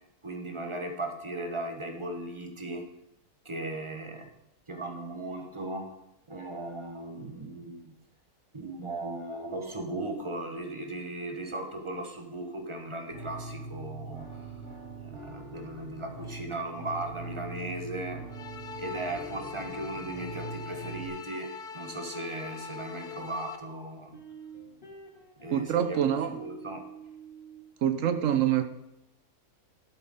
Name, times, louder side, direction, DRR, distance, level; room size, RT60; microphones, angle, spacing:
voice 1, 0.2-2.8 3.4-4.3 4.7-5.9 6.3-7.9 8.5-14.4 15.0-18.3 18.8-24.1 25.4-26.0 26.4-26.8, right 2 dB, 20° right, 4 dB, 1.0 m, -37 dB
sound 1, 13.1-21.1, right 3 dB, 80° right, 4.7 m, -42 dB
sound 2, 18.3-23.6, left 6 dB, 55° left, 0.5 m, -42 dB
sound 3, 24.1-27.6, right 6 dB, 30° left, 2.7 m, -47 dB
voice 2, 25.5-26.4 27.8-28.6, right 10 dB, 60° right, 8 dB, 1.0 m, -26 dB
11.5 x 8.0 x 3.7 m, 0.84 s
omnidirectional pair, 1.7 m